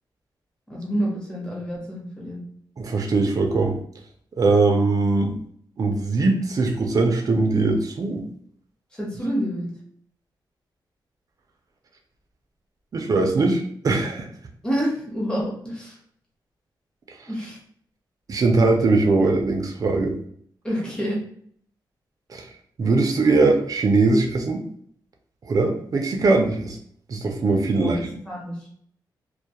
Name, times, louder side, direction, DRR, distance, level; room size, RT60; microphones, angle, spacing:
voice 1, 0.7-2.4 9.0-9.7 14.6-16.0 17.3-17.6 20.6-21.2 27.7-28.6, equal, 10° left, -5 dB, 0.9 m, -28 dB
voice 2, 2.8-3.8 4.4-5.4 5.8-8.2 12.9-14.3 18.3-20.1 22.3-22.5 22.8-24.6 25.4-26.8 27.1-28.0, right 3 dB, 45° right, 3 dB, 0.4 m, -21 dB
2.2 x 2.0 x 2.8 m, 0.63 s
wide cardioid pair, 110°, 8 cm